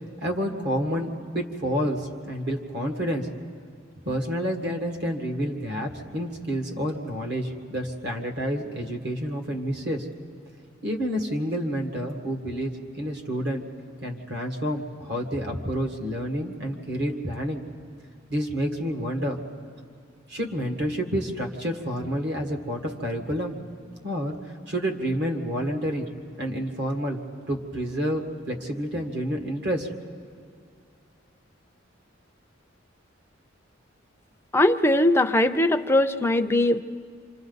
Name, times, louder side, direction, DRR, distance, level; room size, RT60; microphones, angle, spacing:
voice 1, 0.2-3.3 4.1-10.1 10.8-13.6 14.0-17.6 18.3-19.4 20.3-23.6 24.0-24.3 24.7-26.1 26.4-27.2 27.5-29.9, equal, 60° right, 3 dB, 1.8 m, -29 dB
voice 2, 34.5-36.8, left 1 dB, 10° left, 7 dB, 0.5 m, -20 dB
27.5 x 26.0 x 4.1 m, 2.3 s
head